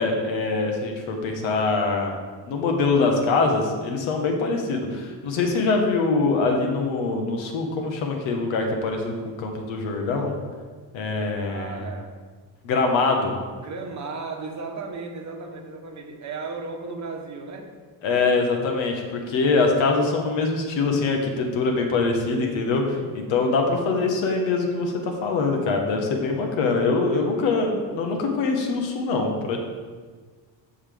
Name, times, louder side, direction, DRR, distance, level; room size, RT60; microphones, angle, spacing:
voice 1, 0.0-2.2 2.5-10.3 10.9-11.9 12.6-13.3 18.0-22.8 23.1-29.6, left 3 dB, 85° left, 3 dB, 1.4 m, -23 dB
voice 2, 11.4-12.1 13.6-17.7 22.5-23.1 23.4-23.7 27.1-27.4, right 4 dB, 40° right, 3 dB, 1.2 m, -36 dB
13.5 x 4.6 x 3.5 m, 1.5 s
cardioid pair, 125°, 45 cm